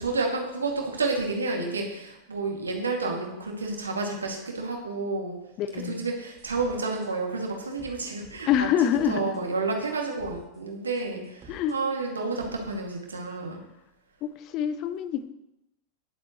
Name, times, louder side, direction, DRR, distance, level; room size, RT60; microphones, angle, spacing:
voice 1, 0.0-5.3 5.7-13.6, right 3 dB, 75° right, 0 dB, 2.3 m, -30 dB
voice 2, 5.6-6.1 8.5-9.4 11.5-11.8 14.2-15.2, left 9 dB, 40° left, 13 dB, 0.7 m, -26 dB
sound 1, 6.4-6.7 7.0-7.1 7.8-8.7 8.9-9.4 9.8-9.9 10.2-10.6 10.9-11.7, right 1 dB, 25° right, 2.4 m, -48 dB
19.0 x 7.5 x 3.1 m, 0.87 s
figure-of-eight pair, 90°, 0 cm